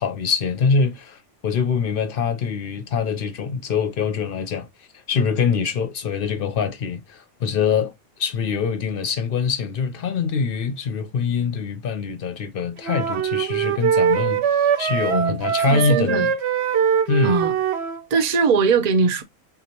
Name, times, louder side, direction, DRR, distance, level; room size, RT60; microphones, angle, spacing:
voice 1, 0.0-7.9 8.2-16.3 17.1-17.5, left 5 dB, 55° left, 0.6 m, -24 dB
sound 1, 12.8-18.0, right 8 dB, 60° right, 0.8 m, -22 dB
voice 2, 15.7-16.3 17.2-17.5 18.1-19.2, right 5 dB, 90° right, 0.3 m, -20 dB
3.9 x 2.8 x 2.8 m
omnidirectional pair, 1.5 m